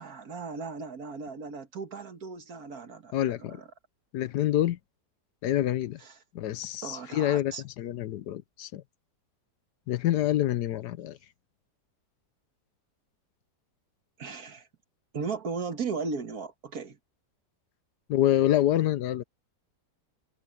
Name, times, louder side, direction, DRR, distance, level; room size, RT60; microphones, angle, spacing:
voice 1, 0.0-3.7 6.0-6.2 6.8-7.6 14.2-14.7 15.1-17.0, right 5 dB, 60° right, 2.0 m, -36 dB
voice 2, 3.1-3.6 4.1-4.8 5.4-6.0 6.3-8.8 9.9-11.2 18.1-19.2, left 13 dB, 80° left, 1.3 m, -27 dB
omnidirectional pair, 1.8 m